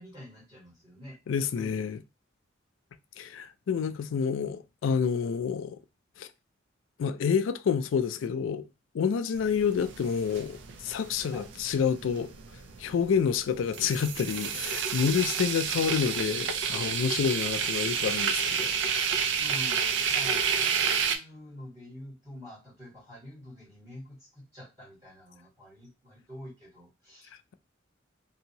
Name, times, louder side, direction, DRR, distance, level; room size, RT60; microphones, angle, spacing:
voice 1, 0.0-1.2 1.5-1.8 11.3-11.5 19.4-27.3, left 1 dB, 20° right, 1.4 m, -46 dB
voice 2, 1.3-2.0 3.2-5.8 6.2-6.3 7.0-8.7 8.9-12.3 12.8-18.7, left 6 dB, 80° left, 0.3 m, -28 dB
sound 1, 9.4-21.2, right 6 dB, 65° right, 0.4 m, -30 dB
2.8 x 2.6 x 2.7 m
head